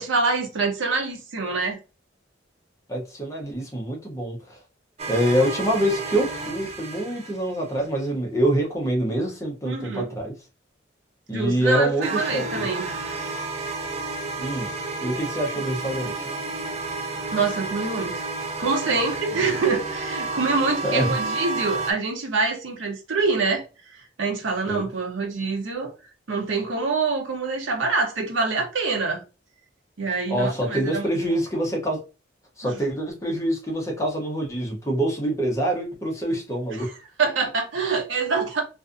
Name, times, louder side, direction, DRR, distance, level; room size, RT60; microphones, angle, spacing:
voice 1, 0.0-1.8 9.7-10.1 11.3-12.9 17.3-18.3 18.6-23.6 23.9-25.9 26.3-29.2 30.0-31.0 32.6-32.8 36.8-36.9 37.2-38.6, right 4 dB, 90° right, 0.6 m, -25 dB
voice 2, 2.9-4.6 5.1-10.3 11.3-12.7 14.4-14.7 15.0-16.3 20.8-21.1 24.6-24.9 30.3-32.0 32.6-36.9, right 1 dB, 15° left, 0.6 m, -25 dB
sound 1, 5.0-7.7 12.0-21.9, right 3 dB, 35° right, 0.4 m, -31 dB
2.5 x 2.4 x 2.4 m
head